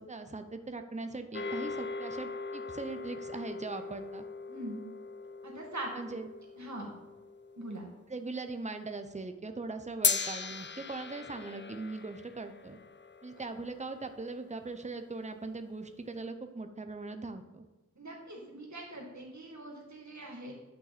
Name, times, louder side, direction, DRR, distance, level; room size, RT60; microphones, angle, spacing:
voice 1, 0.0-4.3 5.9-6.3 8.1-12.8 13.2-17.7, right 3 dB, 25° right, 7 dB, 0.8 m, -40 dB
sound 1, 1.3-7.8 10.0-14.5, left 5 dB, 35° left, 0.5 m, -38 dB
voice 2, 4.5-4.8 5.4-5.9 6.6-6.9 7.6-7.9 18.0-20.5, right 1 dB, 65° right, -1 dB, 2.3 m, -42 dB
10.5 x 5.8 x 4.2 m, 1.0 s
wide cardioid pair, 70°, 31 cm